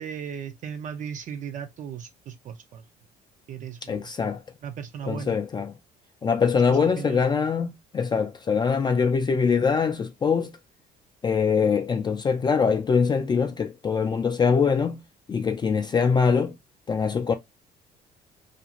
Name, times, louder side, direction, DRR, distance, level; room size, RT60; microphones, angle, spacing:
voice 1, 0.0-2.8 3.5-4.1 4.6-5.4 6.7-7.2, right 8 dB, 50° right, 0.5 m, -36 dB
voice 2, 3.9-4.4 5.1-5.7 6.2-10.5 11.2-15.0 15.3-16.6 16.9-17.3, left 6 dB, 25° left, 0.3 m, -23 dB
2.5 x 2.3 x 2.8 m
cardioid pair, 110°, 17 cm